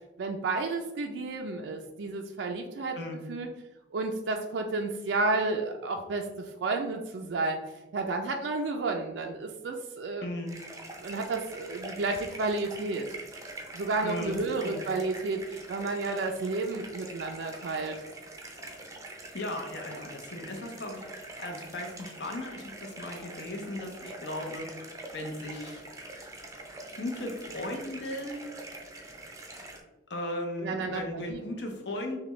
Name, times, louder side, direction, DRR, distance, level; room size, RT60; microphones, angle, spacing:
voice 1, 0.2-3.0 3.3-3.5 3.9-7.6 7.9-10.3 11.0-13.1 13.7-18.0 30.6-31.4, right 3 dB, 70° right, 3 dB, 0.4 m, -31 dB
voice 2, 10.2-10.5 14.0-14.8 19.3-25.8 27.0-28.4 30.1-32.2, left 1 dB, 65° left, 3 dB, 0.8 m, -37 dB
sound 1, 10.5-29.8, right 2 dB, 15° right, 0.5 m, -44 dB
5.8 x 2.2 x 3.1 m, 1.0 s
head